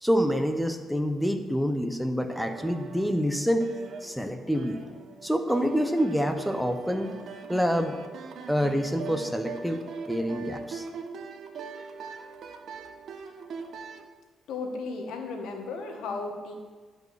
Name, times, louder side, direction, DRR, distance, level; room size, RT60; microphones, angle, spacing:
voice 1, 0.0-3.7 4.0-4.8 5.2-7.1 7.5-8.0 8.5-10.8, equal, ahead, 7 dB, 0.9 m, -27 dB
sound 1, 2.3-14.1, right 5 dB, 60° right, 0.9 m, -41 dB
voice 2, 14.5-16.5, left 3 dB, 80° left, 3 dB, 1.5 m, -35 dB
11.5 x 5.4 x 6.5 m, 1.4 s
cardioid pair, 90°, 0 cm